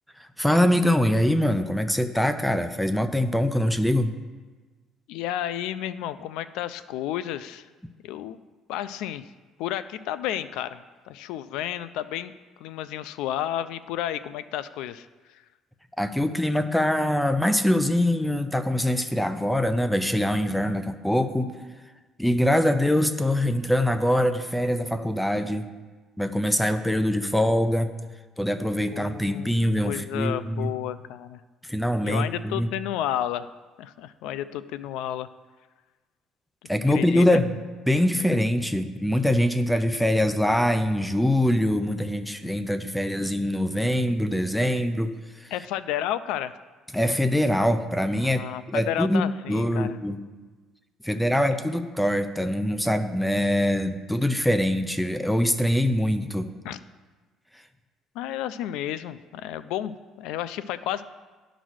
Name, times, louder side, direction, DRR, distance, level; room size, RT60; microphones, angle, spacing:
voice 1, 0.2-4.1 16.0-21.5 22.2-25.7 26.2-27.9 28.4-30.7 31.6-32.7 36.7-37.5 37.9-45.5 46.9-50.2 51.0-56.5, left 1 dB, ahead, 10 dB, 0.4 m, -23 dB
voice 2, 5.1-7.7 8.0-8.4 8.7-9.2 9.6-12.3 12.6-15.1 15.3-15.4 28.9-29.6 29.8-31.4 32.0-33.5 33.8-35.3 36.9-37.2 45.5-46.5 48.2-50.0 51.3-51.6 56.6-56.8 58.1-61.0, left 12 dB, 85° left, 14 dB, 0.3 m, -32 dB
10.0 x 4.0 x 6.2 m, 1.3 s
cardioid pair, 150°, 0 cm